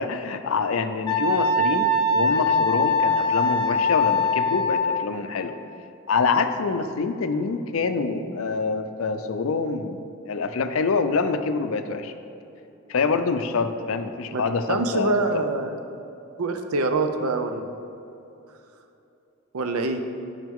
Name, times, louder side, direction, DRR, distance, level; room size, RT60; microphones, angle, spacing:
voice 1, 0.0-5.6 6.1-12.1 12.9-15.2, left 4 dB, 70° left, 9 dB, 0.5 m, -26 dB
Wind instrument woodwind instrument, 1.1-5.1, left 2 dB, 20° left, 0.7 m, -22 dB
voice 2, 14.3-15.8 16.4-17.8 19.5-20.0, right 2 dB, 80° right, 6 dB, 0.6 m, -25 dB
9.1 x 5.6 x 3.6 m, 2.8 s
head